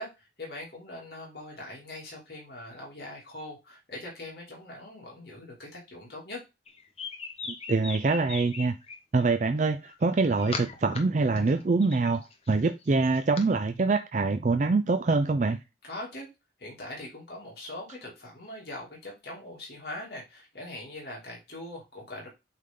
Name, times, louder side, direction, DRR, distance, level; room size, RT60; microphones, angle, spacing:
voice 1, 0.0-6.4 15.8-16.3 16.6-22.3, left 1 dB, 55° left, 2.7 m, -41 dB
sound 1, 6.7-9.0 9.8-11.0 11.3-13.4, left 4 dB, 30° left, 1.0 m, -39 dB
voice 2, 7.7-8.8 9.1-15.6, right 3 dB, 40° right, 0.4 m, -25 dB
8.5 x 3.6 x 3.7 m
head